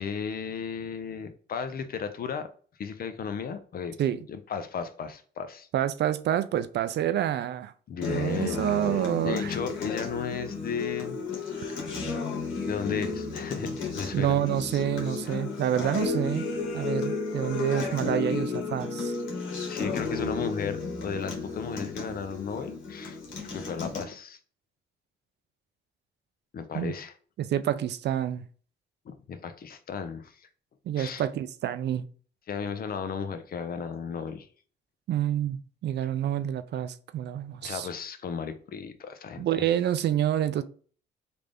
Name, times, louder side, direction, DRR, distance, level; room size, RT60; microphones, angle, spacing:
voice 1, 0.0-2.5 2.8-3.9 4.3-5.7 7.9-8.6 8.9-11.2 11.7-11.9 12.7-14.4 19.7-24.4 26.5-27.1 29.1-30.5 31.0-31.2 32.5-34.5 37.6-39.5, left 6 dB, 50° left, 0.5 m, -35 dB
voice 2, 5.7-7.7 8.1-9.5 14.1-16.5 16.7-19.1 26.7-26.9 27.4-28.4 30.9-32.1 35.1-37.9 39.4-40.6, right 11 dB, 60° right, 0.4 m, -28 dB
Acoustic guitar, 8.0-24.0, left 4 dB, 80° left, 1.2 m, -33 dB
3.4 x 2.5 x 3.4 m
cardioid pair, 90°, 20 cm